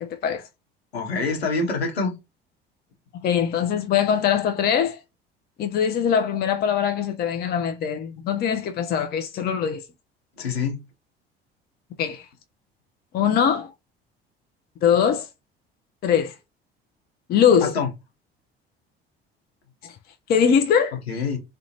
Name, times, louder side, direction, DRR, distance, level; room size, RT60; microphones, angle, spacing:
voice 1, 0.0-0.5 3.2-5.0 5.6-9.8 12.0-12.2 13.1-13.7 14.8-15.3 16.0-16.3 17.3-17.7 19.8-19.9 20.3-21.0, left 8 dB, 30° left, 0.5 m, -22 dB
voice 2, 0.9-2.1 10.4-10.8 17.6-17.9 21.1-21.4, left 4 dB, 80° left, 0.9 m, -25 dB
2.4 x 2.2 x 2.8 m
figure-of-eight pair, 60°, 31 cm